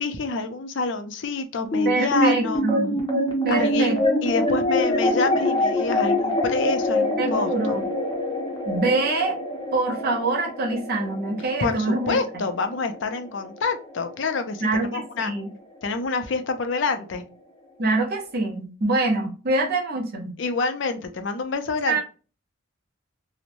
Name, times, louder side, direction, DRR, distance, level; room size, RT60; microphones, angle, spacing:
voice 1, 0.0-2.6 3.5-3.9 4.2-7.7 11.6-15.3 15.8-17.2 20.4-22.0, left 4 dB, 65° left, 7 dB, 0.5 m, -27 dB
sound 1, 1.7-14.3, left 1 dB, 25° left, 0.7 m, -25 dB
voice 2, 1.8-3.0 3.4-4.0 7.2-7.9 8.6-9.4 9.7-12.2 14.6-15.5 17.8-20.3 21.9-22.0, right 2 dB, 50° right, 0 dB, 0.6 m, -25 dB
2.9 x 2.1 x 2.6 m, 0.35 s
head